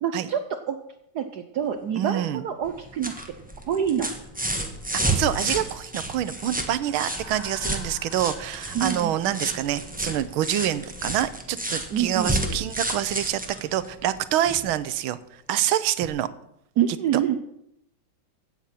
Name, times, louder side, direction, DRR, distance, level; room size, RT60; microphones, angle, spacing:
voice 1, 0.0-0.8 1.1-3.1 3.7-4.1 8.7-9.6 11.9-12.6 16.8-17.4, right 9 dB, 65° right, 8 dB, 1.1 m, -27 dB
voice 2, 2.0-2.4 5.0-15.2 15.5-16.3, right 12 dB, 80° right, 14 dB, 1.5 m, -26 dB
sound 1, 2.6-14.7 16.0-16.1, right 1 dB, 5° right, 1.1 m, -31 dB
sound 2, 6.4-10.9, left 2 dB, 45° left, 3.9 m, -48 dB
16.0 x 8.1 x 5.8 m, 0.79 s
omnidirectional pair, 2.3 m